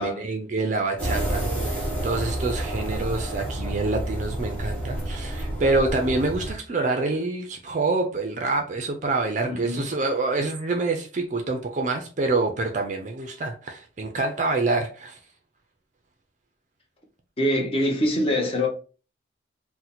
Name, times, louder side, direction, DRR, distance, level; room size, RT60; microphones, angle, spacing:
voice 1, 0.0-15.2, right 3 dB, 40° right, 0.4 m, -26 dB
sound 1, 1.0-6.5, right 1 dB, 5° left, 1.2 m, -29 dB
voice 2, 9.5-9.9 17.4-18.7, left 1 dB, 30° left, 0.7 m, -24 dB
2.8 x 2.1 x 4.0 m
head